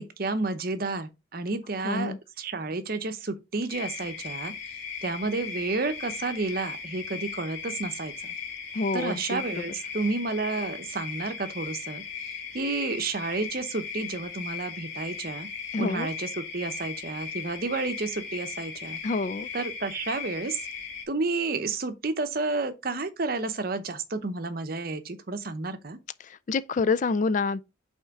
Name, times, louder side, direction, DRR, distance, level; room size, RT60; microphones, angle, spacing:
voice 1, 0.0-4.5 5.0-8.3 8.9-12.0 12.5-15.5 15.8-19.0 19.5-20.6 21.1-26.0, right 3 dB, 50° right, 0.8 m, -31 dB
voice 2, 1.8-2.2 8.7-9.6 15.7-16.1 19.0-19.5 26.2-27.6, left 4 dB, 40° left, 0.3 m, -27 dB
sound 1, 3.7-21.0, left 6 dB, 70° left, 2.5 m, -38 dB
5.5 x 4.3 x 4.8 m
head